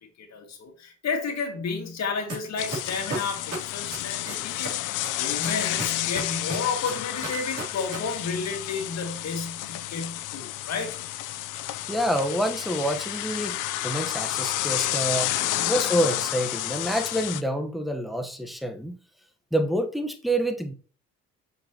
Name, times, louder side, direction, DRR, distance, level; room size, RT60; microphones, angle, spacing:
voice 1, 0.2-11.0 15.4-15.7, left 5 dB, 60° left, 2.1 m, -32 dB
sound 1, 2.3-2.4 2.7-4.7 5.0-8.0 8.2-8.3, right 2 dB, 55° right, 3.2 m, -33 dB
sound 2, 2.6-17.4, left 14 dB, 90° left, 0.6 m, -30 dB
voice 2, 11.9-13.6 13.8-15.3 15.7-19.0 19.5-20.7, equal, ahead, 1.1 m, -27 dB
6.4 x 5.8 x 2.9 m
cardioid pair, 90°, 30 cm